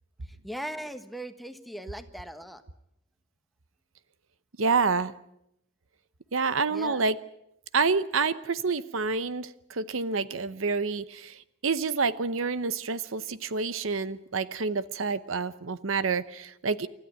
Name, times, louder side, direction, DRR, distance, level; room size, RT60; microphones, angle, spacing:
voice 1, 0.4-2.6 6.7-7.0, equal, ahead, 8 dB, 1.4 m, -39 dB
voice 2, 4.6-5.1 6.3-7.2 7.7-11.4 11.6-16.9, right 4 dB, 70° right, 15 dB, 0.9 m, -28 dB
28.5 x 14.0 x 9.3 m, 0.78 s
head